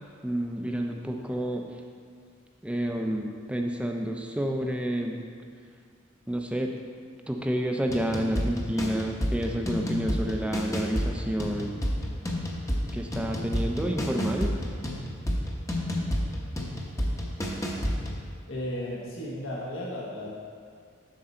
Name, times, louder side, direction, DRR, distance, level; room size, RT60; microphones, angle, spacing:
voice 1, 0.2-1.7 2.6-5.2 6.3-6.7 7.3-11.8 12.9-14.5, equal, 5° right, 2 dB, 0.5 m, -29 dB
sound 1, 7.9-18.2, equal, 15° left, 0.8 m, -30 dB
voice 2, 18.5-20.3, left 1 dB, 80° left, -5 dB, 1.3 m, -34 dB
7.6 x 6.7 x 4.4 m, 2.2 s
head